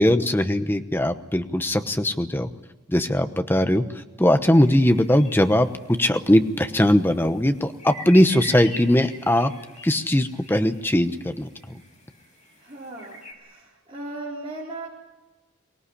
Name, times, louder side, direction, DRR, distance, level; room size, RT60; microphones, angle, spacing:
voice 1, 0.0-2.5 2.9-9.5 9.8-11.5, left 1 dB, 10° left, 8 dB, 1.0 m, -20 dB
sound 1, 4.5-13.3, left 1 dB, 30° left, 6.4 m, -44 dB
voice 2, 12.6-14.9, right 2 dB, 25° right, -7 dB, 4.3 m, -37 dB
24.0 x 18.5 x 10.0 m, 1.1 s
head